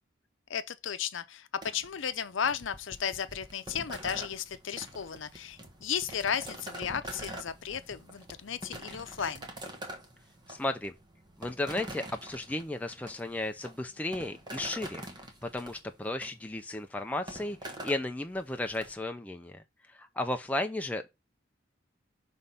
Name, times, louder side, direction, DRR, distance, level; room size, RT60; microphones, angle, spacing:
voice 1, 0.5-9.5, left 8 dB, 80° left, 0.6 m, -34 dB
sound 1, 1.6-18.9, right 1 dB, 20° right, 0.9 m, -45 dB
voice 2, 10.5-10.9 11.4-15.1 15.4-19.6 19.9-21.1, left 1 dB, 10° left, 0.4 m, -34 dB
5.7 x 3.2 x 5.4 m
head